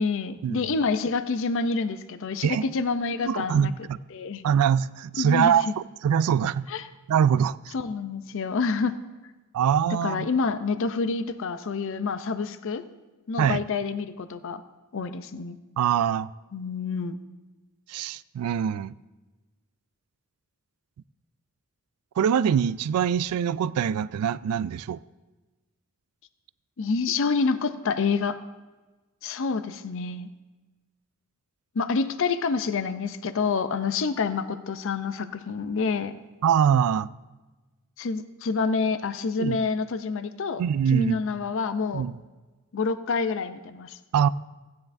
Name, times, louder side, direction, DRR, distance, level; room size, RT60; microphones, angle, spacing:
voice 1, 0.0-3.7 4.1-4.4 5.2-5.7 6.7-6.8 7.7-8.9 10.0-12.8 13.3-14.6 14.9-15.6 16.5-17.1 26.8-28.4 29.2-30.3 31.8-36.2 38.0-40.6 40.9-42.1 42.7-43.9, left 4 dB, 65° left, 0.5 m, -27 dB
voice 2, 3.2-4.0 4.4-5.7 6.0-6.7 7.1-7.7 9.5-10.3 13.4-13.6 15.8-16.3 17.9-18.9 22.2-25.0 36.4-37.1 39.4-39.6 40.6-41.2 41.9-42.2 44.1-44.3, right 8 dB, 90° right, 0.3 m, -23 dB
15.5 x 9.5 x 2.6 m
head